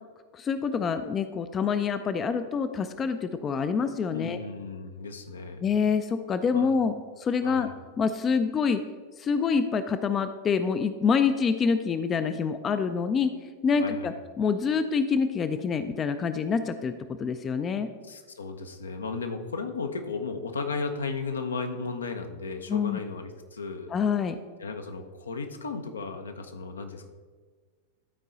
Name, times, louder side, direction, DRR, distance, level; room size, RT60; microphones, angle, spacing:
voice 1, 0.3-4.4 5.6-7.7 8.0-8.8 9.2-13.3 13.6-16.9 17.2-17.9 22.7-23.0 23.9-24.4, left 5 dB, 25° left, 10 dB, 0.4 m, -26 dB
voice 2, 4.1-5.6 6.5-6.7 7.4-7.7 13.8-14.1 18.1-23.9 24.6-27.1, left 4 dB, 75° left, 6 dB, 0.7 m, -35 dB
12.5 x 4.5 x 3.9 m, 1.5 s
figure-of-eight pair, 90°, 0 cm